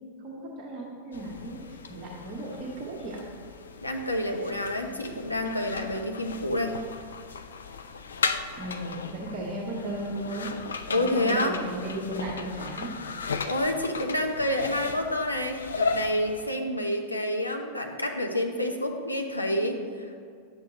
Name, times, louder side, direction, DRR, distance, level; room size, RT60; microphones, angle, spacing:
voice 1, 0.2-3.2 8.6-10.5 10.9-12.9, right 1 dB, 40° right, -3 dB, 1.3 m, -35 dB
sound 1, 1.1-16.5, left 4 dB, 70° left, 0.4 m, -36 dB
voice 2, 3.8-6.8 10.9-11.6 13.4-20.2, left 1 dB, 85° left, 2 dB, 0.8 m, -28 dB
11.0 x 8.1 x 3.0 m, 2.3 s
figure-of-eight pair, 90°, 0 cm